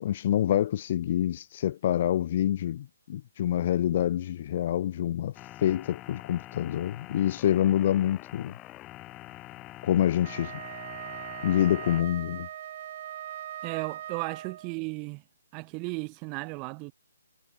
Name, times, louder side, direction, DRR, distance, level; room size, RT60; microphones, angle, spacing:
voice 1, 0.0-5.3 5.6-8.5 9.8-10.5 11.4-12.5, left 11 dB, 40° left, 0.5 m, -26 dB
sound 1, 5.3-12.0, left 17 dB, 20° left, 5.8 m, -45 dB
Wind instrument woodwind instrument, 10.2-14.8, right 11 dB, 40° right, 1.3 m, -40 dB
voice 2, 13.6-15.2 15.5-16.9, right 32 dB, 25° right, 1.0 m, -35 dB
figure-of-eight pair, 140°, 0 cm